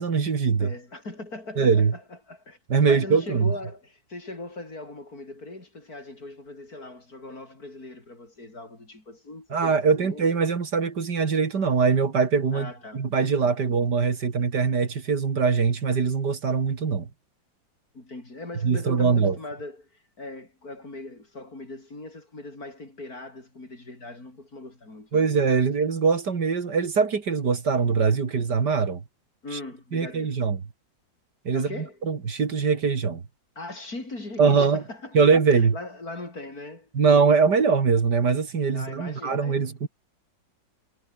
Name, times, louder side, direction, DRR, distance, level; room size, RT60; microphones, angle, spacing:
voice 1, 0.0-0.7 1.6-1.9 2.7-3.5 9.5-17.1 18.6-19.4 25.1-29.0 29.5-29.6 29.9-30.6 31.4-31.7 32.0-33.2 34.4-34.8 35.1-35.7 36.9-39.9, right 5 dB, 60° right, 2.7 m, -22 dB
voice 2, 0.6-2.6 2.8-10.2 12.5-13.1 17.9-25.3 29.4-30.3 31.5-32.0 33.6-36.9 38.7-39.9, left 2 dB, 50° left, 6.1 m, -40 dB
omnidirectional pair, 2.1 m